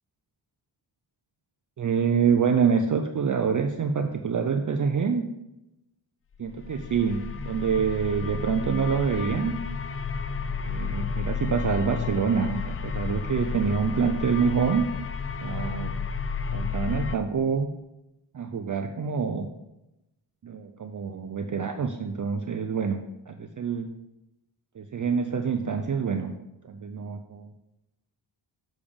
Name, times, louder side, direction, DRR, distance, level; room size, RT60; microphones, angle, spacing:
voice 1, 1.8-5.2 6.4-9.5 10.1-10.3 10.5-14.8 15.4-15.9 16.5-17.7 18.3-19.5 20.4-23.0 23.3-23.9 24.8-26.3 26.7-27.5, right 6 dB, 40° right, 5 dB, 0.5 m, -26 dB
sound 1, 6.5-17.2, left 5 dB, 30° left, 0.3 m, -32 dB
7.1 x 3.5 x 5.0 m, 0.91 s
cardioid pair, 65°, 50 cm